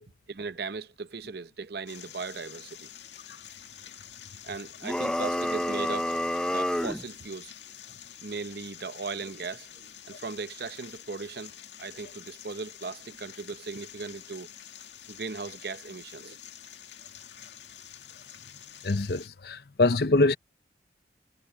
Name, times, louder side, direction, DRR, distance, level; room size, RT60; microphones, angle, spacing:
voice 1, 0.3-2.9 4.4-7.5 8.2-11.5 11.8-14.5 15.1-16.4, right 4 dB, 60° right, 0.8 m, -38 dB
sound 1, 1.9-19.3, left 10 dB, 80° left, 2.0 m, -48 dB
sound 2, 4.8-7.1, left 1 dB, 5° left, 0.5 m, -28 dB
voice 2, 18.8-20.4, left 2 dB, 60° left, 0.8 m, -24 dB
head